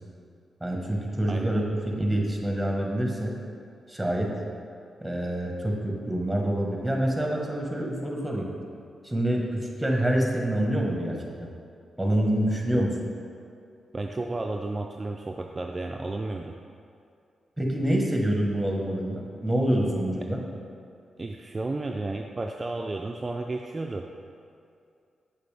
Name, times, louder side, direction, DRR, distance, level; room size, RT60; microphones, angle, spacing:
voice 1, 0.6-3.3 3.9-4.3 5.0-8.5 9.0-11.5 12.0-12.9 17.6-20.4, right 1 dB, 10° right, 0 dB, 1.3 m, -26 dB
voice 2, 1.3-1.6 12.7-12.9 13.9-16.5 21.2-24.1, right 2 dB, 35° right, 2 dB, 0.4 m, -32 dB
6.7 x 5.0 x 3.4 m, 2.4 s
supercardioid pair, 45°, 0 cm